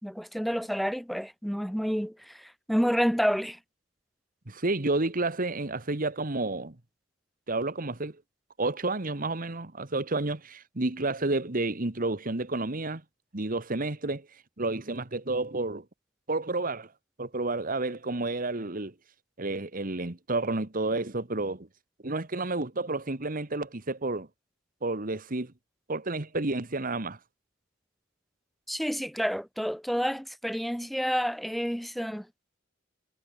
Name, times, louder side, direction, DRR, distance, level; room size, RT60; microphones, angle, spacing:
voice 1, 0.0-3.6 28.7-32.3, equal, ahead, 3.0 m, -29 dB
voice 2, 4.5-6.8 7.5-8.2 8.6-13.0 13.3-14.3 14.6-15.8 16.3-16.9 17.2-18.9 19.4-21.7 22.0-24.3 24.8-25.5 25.9-27.2, right 2 dB, 45° right, 1.7 m, -30 dB
head